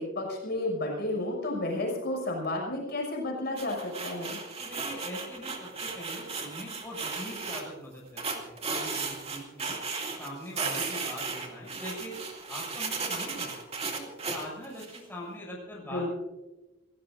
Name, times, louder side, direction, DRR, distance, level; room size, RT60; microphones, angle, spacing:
voice 1, 0.0-4.4 15.9-16.1, left 1 dB, 55° left, -1 dB, 6.3 m, -32 dB
sound 1, 3.6-7.6 8.2-10.3 10.6-15.0, right 4 dB, 30° right, 2.3 m, -35 dB
voice 2, 4.6-9.8 10.2-12.2 12.5-13.5 13.9-16.1, equal, 10° left, -3 dB, 6.7 m, -42 dB
28.5 x 17.0 x 2.6 m, 1.1 s
head